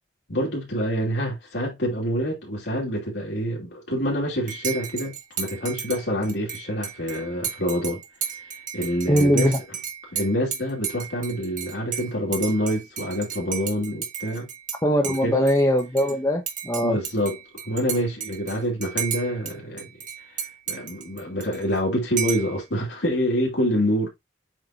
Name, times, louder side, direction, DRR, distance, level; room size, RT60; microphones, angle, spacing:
voice 1, 0.3-8.0 8.4-9.5 10.1-14.5 15.2-15.4 16.8-17.4 17.7-19.9 20.3-24.1, equal, 70° left, 2.8 m, -26 dB
Dishes pots and pans / Cutlery silverware / Chink clink, 4.5-14.8 15.0-16.1 16.5-19.5 19.8-21.8 22.2-22.5, right 8 dB, 45° right, 1.7 m, -33 dB
voice 2, 9.1-9.6 14.8-17.0, equal, 20° left, 1.0 m, -21 dB
7.9 x 4.7 x 2.9 m
head